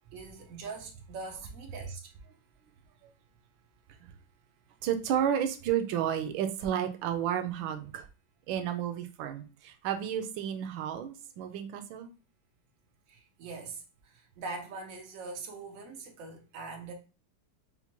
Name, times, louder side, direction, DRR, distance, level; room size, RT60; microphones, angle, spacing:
voice 1, 0.1-2.0 13.1-16.9, right 3 dB, 90° right, 0.7 m, -42 dB
voice 2, 4.8-8.1 8.5-12.1, right 9 dB, 75° right, 1.2 m, -32 dB
5.7 x 2.1 x 2.9 m
omnidirectional pair, 2.4 m